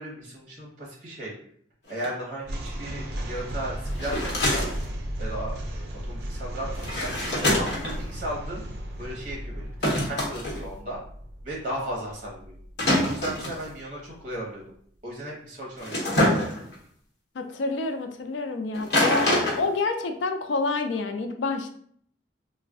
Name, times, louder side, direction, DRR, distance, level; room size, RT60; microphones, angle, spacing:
voice 1, 0.0-1.3 1.9-4.7 5.2-7.1 7.6-8.6 9.0-11.0 11.4-12.6 13.0-14.6 15.0-16.5, right 1 dB, 40° right, -4 dB, 0.9 m, -35 dB
sound 1, 1.9-2.1 3.9-4.9 6.7-8.0 9.8-10.6 12.8-13.7 15.8-16.7 18.7-19.6, left 1 dB, 65° left, 0.9 m, -25 dB
sound 2, 2.4-13.7, equal, 60° right, 0.5 m, -35 dB
voice 2, 17.4-19.3 19.6-21.7, left 3 dB, 80° left, 6 dB, 0.4 m, -28 dB
2.4 x 2.1 x 3.5 m, 0.62 s
head